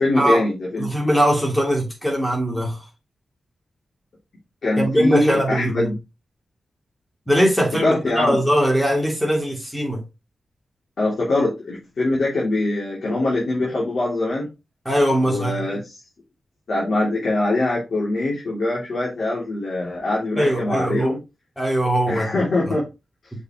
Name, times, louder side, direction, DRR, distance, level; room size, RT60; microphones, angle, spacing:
voice 1, 0.0-1.1 4.6-6.0 7.8-8.4 11.0-14.5 15.2-16.0 16.7-21.2 22.1-22.9, left 2 dB, 50° left, 2.9 m, -23 dB
voice 2, 0.8-2.8 4.8-5.9 7.3-10.0 14.8-15.7 20.4-21.1 21.6-22.3, equal, 5° left, 2.9 m, -21 dB
6.5 x 5.5 x 3.0 m
wide cardioid pair, 180°, 0 cm